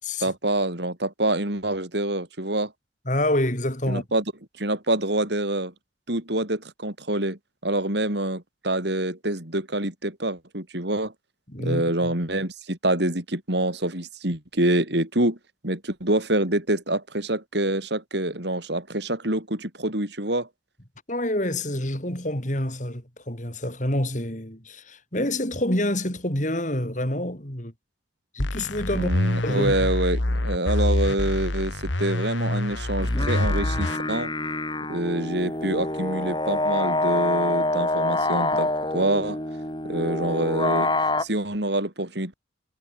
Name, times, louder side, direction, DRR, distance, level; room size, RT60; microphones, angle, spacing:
voice 1, 0.2-2.7 3.9-4.2 4.6-5.7 6.1-11.1 11.6-15.4 15.6-20.5 28.9-34.3 34.9-39.4 39.8-40.9 41.2-42.4, right 1 dB, 60° right, 4.5 m, -26 dB
voice 2, 3.1-4.0 11.5-11.8 21.1-27.7 28.3-29.1 29.4-29.9, left 1 dB, 40° left, 5.3 m, -27 dB
sound 1, 28.4-34.0, left 1 dB, 80° left, 2.1 m, -26 dB
sound 2, 33.0-41.2, left 2 dB, 25° left, 8.0 m, -26 dB
head